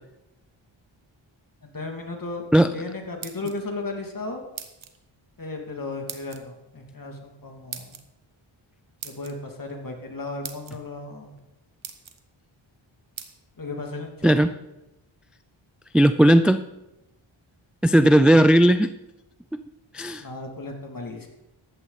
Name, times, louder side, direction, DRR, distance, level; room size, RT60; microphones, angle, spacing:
voice 1, 1.6-2.4 2.7-4.4 5.4-8.0 9.0-11.4 13.6-14.4 20.2-21.3, left 3 dB, 40° left, 2 dB, 2.7 m, -35 dB
sound 1, 3.0-3.8 4.6-5.0 6.1-6.4 7.7-8.0 9.0-9.3 10.1-10.2 10.4-10.8 11.4-11.5 11.8-12.2 13.2-13.3, right 7 dB, 70° right, 1.3 m, -39 dB
voice 2, 15.9-16.6 17.8-18.9 19.9-20.2, right 1 dB, ahead, 11 dB, 0.4 m, -16 dB
15.0 x 11.0 x 4.1 m, 0.94 s
cardioid pair, 55°, 49 cm